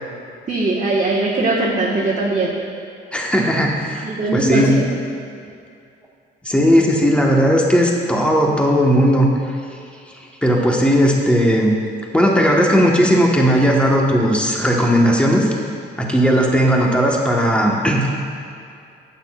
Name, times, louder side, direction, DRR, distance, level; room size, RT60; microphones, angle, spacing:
voice 1, 0.5-2.5 4.0-4.8, right 2 dB, 40° right, -6 dB, 1.4 m, -20 dB
voice 2, 3.1-4.0 4.3-4.7 6.4-9.3 10.4-11.8 12.1-15.5 16.0-18.1, equal, 5° left, -1 dB, 1.3 m, -16 dB
11.5 x 8.6 x 2.4 m, 2.4 s
cardioid pair, 90°, 20 cm